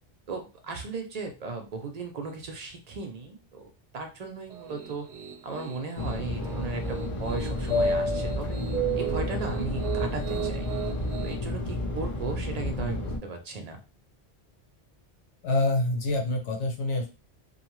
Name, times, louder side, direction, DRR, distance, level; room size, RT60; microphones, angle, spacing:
voice 1, 0.3-5.1 5.4-8.6 9.0-10.7 11.2-13.8, right 4 dB, 55° right, 4 dB, 0.4 m, -36 dB
Piano, 4.5-11.3, right 10 dB, 85° right, 0.9 m, -38 dB
Fixed-wing aircraft airplane, 6.0-13.2, left 1 dB, 45° left, 0.4 m, -30 dB
voice 2, 15.4-17.1, left 2 dB, 75° left, 2 dB, 1.0 m, -26 dB
2.6 x 2.2 x 3.0 m, 0.32 s
omnidirectional pair, 1.2 m